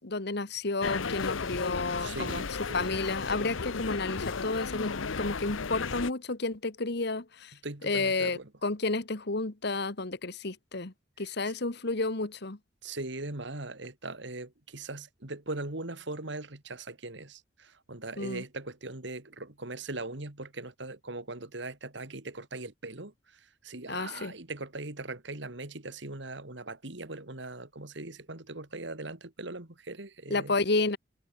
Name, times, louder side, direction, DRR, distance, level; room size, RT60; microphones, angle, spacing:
voice 1, 0.0-2.4 2.7-7.5 7.8-12.6 18.2-18.4 23.9-24.3 30.3-31.0, left 3 dB, 55° left, 1.5 m, -31 dB
sound 1, 0.8-6.1, left 5 dB, 85° left, 0.9 m, -34 dB
voice 2, 2.0-2.9 7.6-8.5 11.2-11.3 12.8-30.5, right 2 dB, 60° right, 2.5 m, -40 dB
head